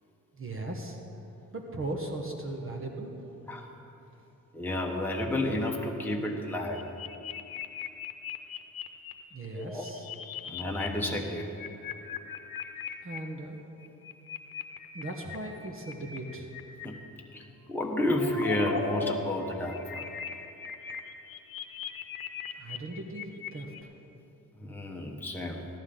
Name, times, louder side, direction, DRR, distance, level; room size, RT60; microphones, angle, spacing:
voice 1, 0.3-1.0 1.5-3.2 9.3-10.1 13.0-13.6 14.9-16.5 22.5-23.9, right 2 dB, 40° right, 2 dB, 1.3 m, -38 dB
voice 2, 4.5-6.8 9.5-9.8 10.4-11.5 16.8-17.0 17.3-17.4 17.7-20.0 24.6-25.7, left 1 dB, 5° left, -1 dB, 1.2 m, -31 dB
sound 1, 6.5-9.1 9.6-10.9 11.1-13.2 13.8-16.9 17.6-19.1 19.4-23.8, left 7 dB, 85° left, 0.9 m, -39 dB
17.0 x 11.5 x 3.9 m, 3.0 s
cardioid pair, 80°, 34 cm